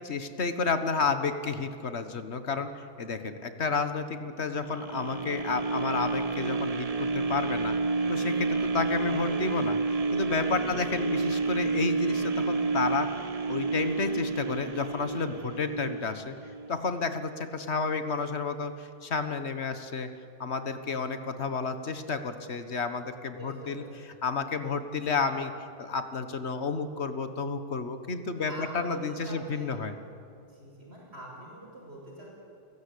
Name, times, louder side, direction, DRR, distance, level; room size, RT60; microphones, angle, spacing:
voice 1, 0.0-2.7 3.0-7.7 8.1-13.1 13.5-16.3 16.7-20.1 20.4-23.8 24.2-25.5 25.8-29.9, left 4 dB, 80° left, 9 dB, 1.6 m, -31 dB
sound 1, 4.6-16.7 17.2-17.3, right 3 dB, 35° right, 1.0 m, -30 dB
voice 2, 10.3-10.9 23.4-23.9 28.3-29.7 30.5-32.3, right 1 dB, 70° right, -3 dB, 6.2 m, -44 dB
30.0 x 17.0 x 8.5 m, 2.6 s
omnidirectional pair, 1.1 m